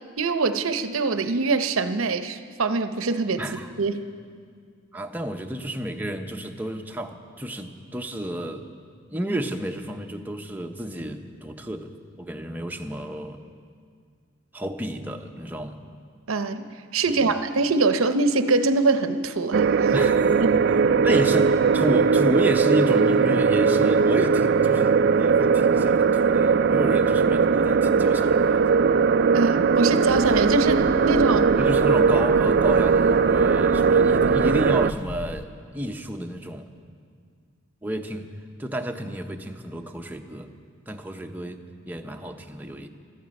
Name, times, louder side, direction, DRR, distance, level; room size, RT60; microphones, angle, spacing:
voice 1, 0.2-3.4 3.8-4.1 16.3-19.9 20.4-20.5 21.1-21.2 29.3-31.6, right 3 dB, 90° right, 10 dB, 0.7 m, -23 dB
voice 2, 3.4-3.7 4.9-8.6 9.1-13.4 14.5-15.8 17.1-17.3 19.9-20.5 21.0-28.6 31.6-36.7 37.8-40.5 40.9-42.9, right 1 dB, 10° right, 4 dB, 0.7 m, -31 dB
sound 1, 19.5-34.9, right 5 dB, 50° right, 0.3 m, -19 dB
sound 2, 30.1-35.4, left 2 dB, 45° left, 0.4 m, -38 dB
17.0 x 13.5 x 5.3 m, 2.1 s
head